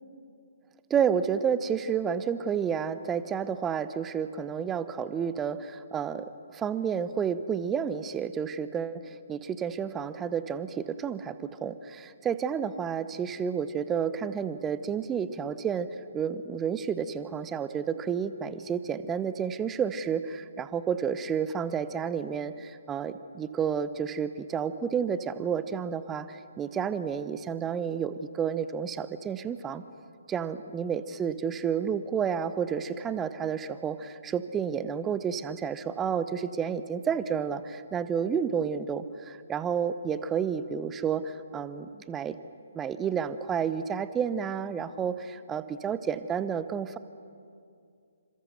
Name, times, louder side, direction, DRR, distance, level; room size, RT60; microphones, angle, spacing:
voice 1, 0.9-29.8 30.3-42.4 42.7-47.0, right 7 dB, 15° right, 13 dB, 0.9 m, -30 dB
28.5 x 26.5 x 6.7 m, 2.4 s
figure-of-eight pair, 135°, 0 cm